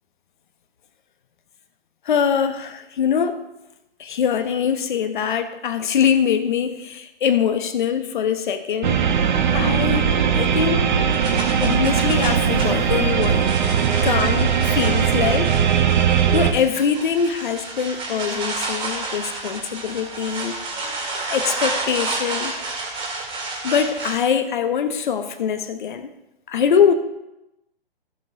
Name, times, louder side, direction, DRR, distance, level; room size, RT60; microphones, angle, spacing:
voice 1, 2.0-3.5 4.0-9.0 9.5-10.8 11.6-15.5 16.3-20.6 21.3-22.5 23.6-26.1 26.5-26.9, left 7 dB, 55° left, 1.1 m, -23 dB
sound 1, 8.8-16.5, right 7 dB, 50° right, 1.1 m, -19 dB
sound 2, 11.1-24.1, right 3 dB, 20° right, 1.9 m, -30 dB
15.0 x 7.4 x 2.7 m
figure-of-eight pair, 125°, 29 cm